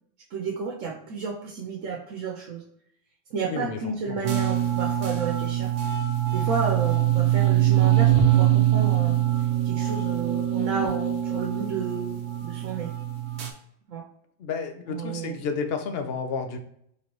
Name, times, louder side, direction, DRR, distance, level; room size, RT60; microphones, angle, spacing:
voice 1, 0.3-2.6 3.3-5.7 6.3-9.2 9.6-12.9 13.9-14.1 14.9-15.4, right 5 dB, 80° right, -1 dB, 1.1 m, -32 dB
sound 1, 4.2-13.5, right 12 dB, 60° right, 0.9 m, -23 dB
voice 2, 14.4-16.6, left 5 dB, 60° left, 6 dB, 0.8 m, -31 dB
4.2 x 3.3 x 3.0 m, 0.70 s
omnidirectional pair, 1.3 m